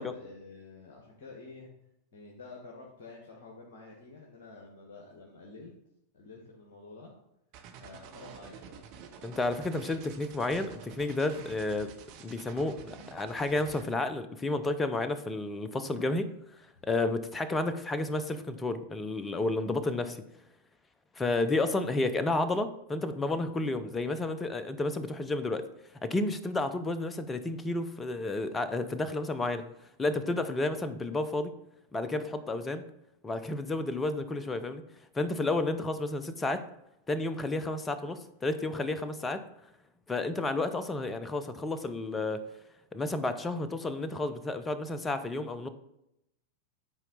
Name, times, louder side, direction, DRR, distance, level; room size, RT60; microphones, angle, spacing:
voice 1, 0.0-1.7 2.1-5.7 6.1-7.1 7.8-8.8 9.7-10.2 16.8-16.9, left 3 dB, 55° left, -1 dB, 1.3 m, -49 dB
sound 1, 7.5-13.8, right 8 dB, 45° right, 1.0 m, -48 dB
voice 2, 9.2-11.9 12.2-16.3 16.8-20.2 21.2-25.6 26.0-29.6 30.0-31.5 31.9-32.8 33.2-34.8 35.1-36.6 37.1-39.4 40.1-42.4 42.9-45.7, left 2 dB, 15° left, 12 dB, 0.6 m, -31 dB
9.8 x 4.4 x 4.0 m, 0.82 s
figure-of-eight pair, 90°, 0 cm